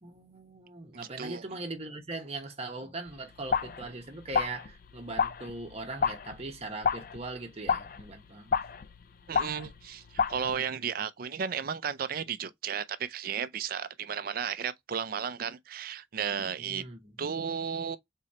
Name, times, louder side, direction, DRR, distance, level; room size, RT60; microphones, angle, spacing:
voice 1, 0.0-8.5 16.6-17.1, right 2 dB, 30° right, 1.0 m, -40 dB
sound 1, 3.1-10.6, left 6 dB, 45° left, 0.3 m, -31 dB
voice 2, 9.3-16.8 17.2-18.0, right 7 dB, 45° right, 0.4 m, -34 dB
3.8 x 3.0 x 4.2 m
head